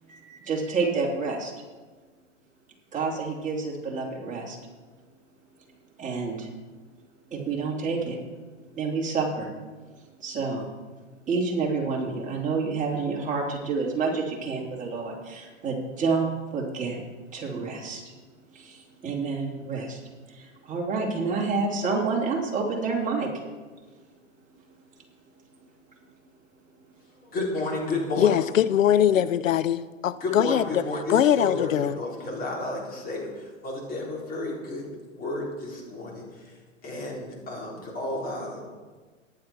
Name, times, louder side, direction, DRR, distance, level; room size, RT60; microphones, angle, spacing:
voice 1, 0.1-1.5 2.9-4.6 6.0-6.5 7.3-8.2 8.7-9.5 10.2-10.7 11.3-17.0 17.3-18.0 18.5-20.0 20.3-23.3, right 4 dB, 20° right, -1 dB, 3.1 m, -28 dB
voice 2, 27.2-28.4 30.2-34.9 35.1-36.5 36.8-38.6, left 2 dB, 25° left, -3 dB, 4.2 m, -32 dB
voice 3, 28.2-32.0, left 10 dB, 90° left, 17 dB, 0.6 m, -22 dB
14.5 x 10.5 x 4.5 m, 1.4 s
hypercardioid pair, 120°, 38 cm